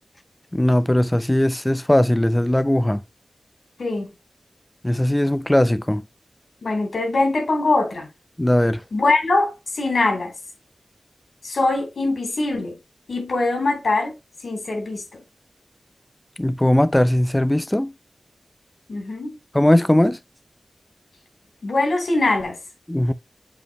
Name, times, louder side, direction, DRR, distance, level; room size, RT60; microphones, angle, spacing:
voice 1, 0.5-3.0 4.8-6.0 8.4-8.8 16.4-17.9 19.5-20.2 22.9-23.1, left 1 dB, 10° left, 0.7 m, -19 dB
voice 2, 3.8-4.1 6.6-8.1 8.9-10.3 11.4-12.8 13.1-14.1 14.4-15.2 18.9-19.4 21.6-22.6, left 2 dB, 70° left, 3.8 m, -22 dB
7.4 x 5.2 x 3.1 m
wide cardioid pair, 105°, 0 cm